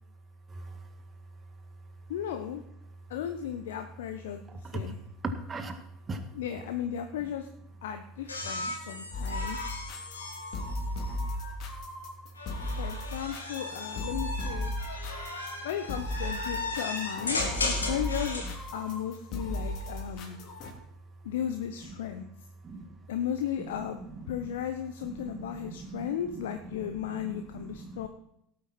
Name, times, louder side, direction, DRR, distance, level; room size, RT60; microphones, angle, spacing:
voice 1, 0.5-0.8 4.6-4.9 5.2-5.8 6.1-6.2 8.7-8.8 22.6-23.0 24.0-24.6 25.0-26.2 27.0-28.1, right 2 dB, 25° right, 6 dB, 2.0 m, -39 dB
voice 2, 2.1-2.6 3.1-5.0 6.3-7.5 7.8-9.7 12.8-14.8 15.6-18.4 18.7-20.4 21.2-22.3 23.1-24.0 24.3-28.1, left 10 dB, 70° left, 7 dB, 0.9 m, -35 dB
sound 1, 8.3-11.6 12.4-18.6 20.0-20.6, left 3 dB, 85° left, 2.3 m, -36 dB
sound 2, 9.1-20.7, left 1 dB, 50° left, 3.1 m, -36 dB
17.5 x 8.7 x 4.4 m, 0.77 s
figure-of-eight pair, 75°, 0 cm